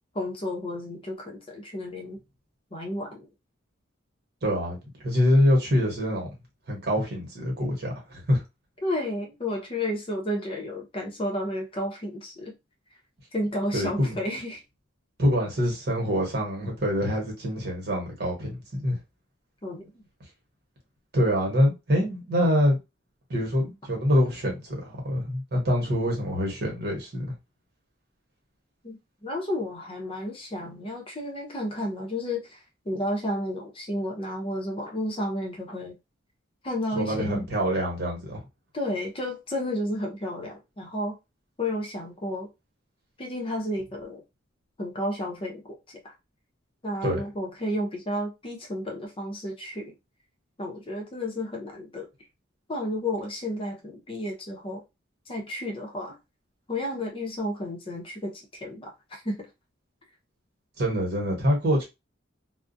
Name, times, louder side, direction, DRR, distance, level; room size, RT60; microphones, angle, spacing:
voice 1, 0.1-2.2 2.7-3.3 8.8-12.5 13.3-14.6 19.6-19.9 28.8-36.0 36.6-37.5 38.7-41.2 41.6-42.5 43.2-44.2 44.8-46.1 46.8-49.9 50.6-52.1 52.7-54.8 55.3-56.2 56.7-59.5, left 1 dB, 30° left, 0.6 m, -32 dB
voice 2, 4.4-6.3 6.7-7.9 8.3-8.4 13.7-14.2 15.2-19.0 21.1-22.8 23.3-27.3 36.9-38.4 47.0-47.2 60.8-61.8, equal, 60° right, 1.1 m, -25 dB
2.3 x 2.0 x 2.6 m
head